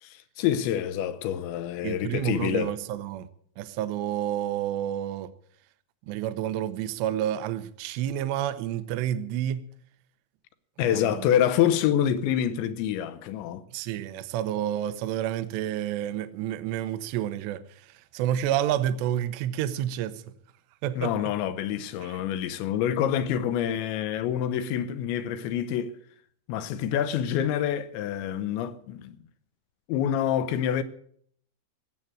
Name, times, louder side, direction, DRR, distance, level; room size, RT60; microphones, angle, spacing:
voice 1, 0.0-2.7 10.8-13.6 21.0-25.9 26.5-29.2 29.9-30.8, left 10 dB, 80° left, 2.9 m, -27 dB
voice 2, 1.8-3.3 3.6-5.3 6.1-9.6 10.8-11.3 13.7-20.2 20.8-21.3 22.0-22.2, right 11 dB, 75° right, 2.7 m, -29 dB
17.5 x 7.9 x 8.7 m
omnidirectional pair, 5.6 m